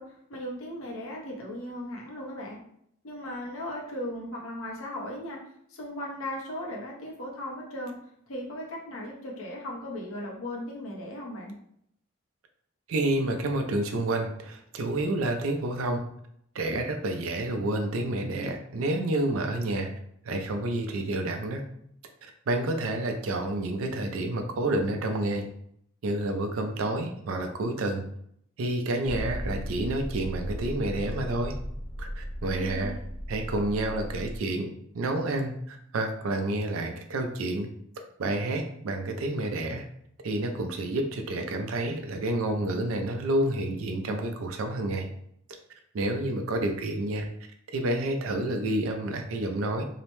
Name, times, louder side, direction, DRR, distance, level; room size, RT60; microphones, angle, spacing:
voice 1, 0.0-2.6 3.0-5.4 5.7-8.0 8.3-11.5 32.5-33.0, left 1 dB, 90° left, -2 dB, 0.8 m, -37 dB
voice 2, 12.9-16.1 16.5-19.9 20.2-21.6 22.5-25.5 26.0-28.0 28.6-31.5 32.0-32.9 33.3-34.7 34.9-37.7 38.2-39.8 40.2-45.1 45.9-47.3 47.7-49.8, right 1 dB, 80° right, 5 dB, 0.4 m, -29 dB
Motor vehicle (road), 29.0-34.4, equal, 35° right, 0.7 m, -36 dB
2.7 x 2.1 x 3.0 m, 0.70 s
head